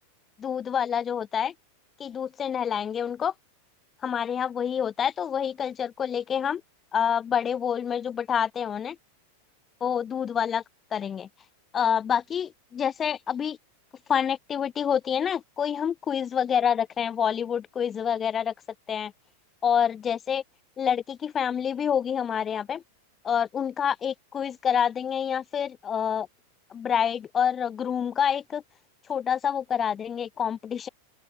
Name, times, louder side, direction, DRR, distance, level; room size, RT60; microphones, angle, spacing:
voice 1, 0.4-1.5 2.0-3.3 4.0-6.6 6.9-9.0 9.8-10.6 10.9-11.3 11.7-13.6 14.1-18.5 18.9-19.1 19.6-20.4 20.8-22.8 23.2-26.3 26.7-28.6 29.1-30.9, left 8 dB, 25° left, 6.1 m, -27 dB
open air
figure-of-eight pair, 90°, 0 cm